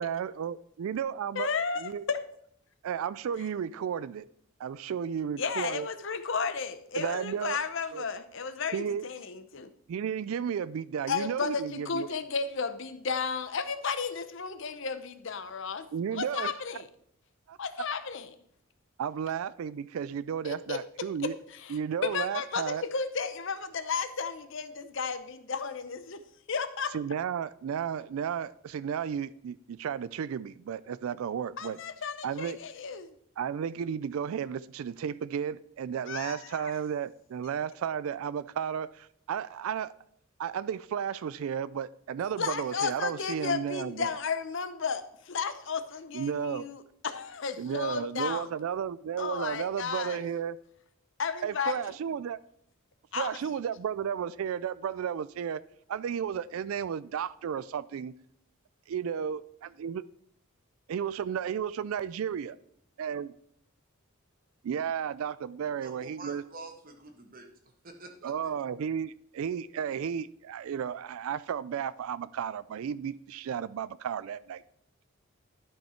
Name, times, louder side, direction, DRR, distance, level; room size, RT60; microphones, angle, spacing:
voice 1, 0.0-1.5 1.8-2.0 2.8-4.3 4.6-5.9 6.9-7.6 7.9-8.0 8.7-9.1 9.9-12.1 15.9-16.5 17.5-17.6 19.0-21.3 21.7-22.8 26.9-31.8 32.2-32.6 33.4-39.9 40.4-44.1 46.1-46.7 47.6-50.6 51.4-52.4 53.2-55.6 55.9-58.1 58.9-59.4 59.8-60.0 60.9-62.5 63.0-63.3 64.6-66.4 68.2-74.6, right 8 dB, 80° right, 17 dB, 0.3 m, -33 dB
voice 2, 1.3-2.2 5.4-9.7 11.1-15.9 16.1-16.9 17.6-18.3 20.4-20.8 21.2-26.2 26.5-27.0 31.6-33.2 36.1-36.7 42.4-48.5 49.2-50.2 51.2-51.9 53.1-53.4, left 5 dB, 60° left, 11 dB, 0.7 m, -33 dB
voice 3, 65.8-67.5 67.8-68.5, right 2 dB, 40° right, 5 dB, 1.5 m, -47 dB
12.0 x 5.6 x 4.3 m, 0.68 s
head